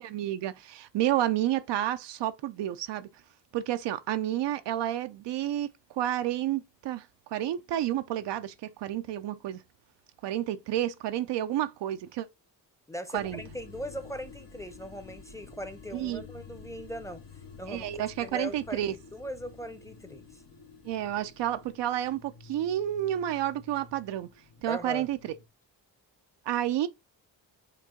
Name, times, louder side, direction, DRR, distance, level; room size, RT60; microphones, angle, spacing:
voice 1, 0.0-3.1 3.5-9.6 10.2-12.3 13.1-13.4 15.9-16.2 17.7-19.0 20.8-24.3 24.6-25.3 26.5-26.9, right 12 dB, 70° right, 0.6 m, -30 dB
voice 2, 12.9-17.2 17.6-17.9 18.2-18.9 19.1-20.4 24.7-25.1, equal, 5° left, 0.7 m, -39 dB
sound 1, 13.1-25.5, left 5 dB, 70° left, 1.2 m, -50 dB
5.3 x 2.7 x 3.7 m
cardioid pair, 65°, 44 cm